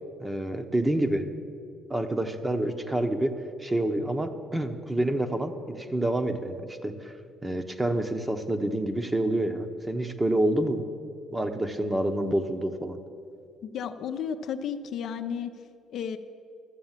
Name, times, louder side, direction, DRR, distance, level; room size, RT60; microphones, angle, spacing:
voice 1, 0.2-1.2 1.9-3.3 3.6-7.1 7.4-10.8 11.3-13.0, right 1 dB, 15° right, 7 dB, 1.0 m, -28 dB
voice 2, 13.7-15.5 15.9-16.2, left 7 dB, 65° left, 7 dB, 0.6 m, -32 dB
13.0 x 7.3 x 7.4 m, 2.4 s
supercardioid pair, 70°, 0 cm